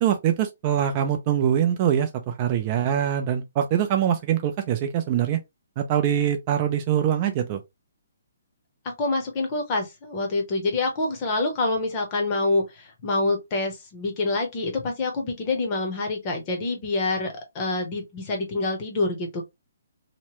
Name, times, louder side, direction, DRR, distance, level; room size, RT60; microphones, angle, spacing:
voice 1, 0.0-5.4 5.8-7.6, right 10 dB, 25° right, 0.3 m, -23 dB
voice 2, 9.0-19.4, left 2 dB, 25° left, 0.8 m, -26 dB
2.9 x 2.1 x 3.0 m
hypercardioid pair, 170°, 0 cm